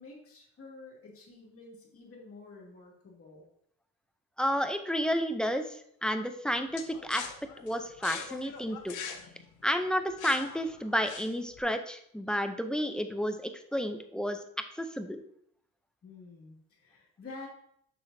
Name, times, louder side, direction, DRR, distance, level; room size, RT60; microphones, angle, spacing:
voice 1, 0.0-3.5 16.0-17.5, left 3 dB, 50° left, -2 dB, 2.4 m, -49 dB
voice 2, 4.4-7.2 7.6-9.0 9.6-14.4 14.8-15.2, equal, 5° left, 7 dB, 0.6 m, -31 dB
sound 1, 6.8-11.6, left 7 dB, 80° left, 0.9 m, -42 dB
6.7 x 6.0 x 2.7 m, 0.69 s
cardioid pair, 90°, 30 cm